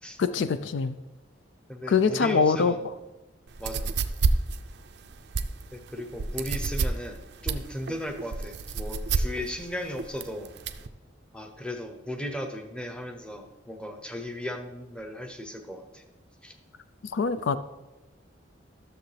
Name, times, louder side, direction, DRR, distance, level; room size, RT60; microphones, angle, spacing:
voice 1, 0.2-0.9 1.9-2.7 17.1-17.6, left 5 dB, 70° left, 12 dB, 0.4 m, -23 dB
voice 2, 1.7-2.8 3.6-3.9 5.7-10.5 11.3-16.0 16.4-16.5, left 1 dB, 5° left, 4 dB, 0.7 m, -36 dB
sound 1, 3.5-10.9, right 4 dB, 55° right, 0.4 m, -29 dB
12.5 x 6.8 x 3.3 m, 1.1 s
head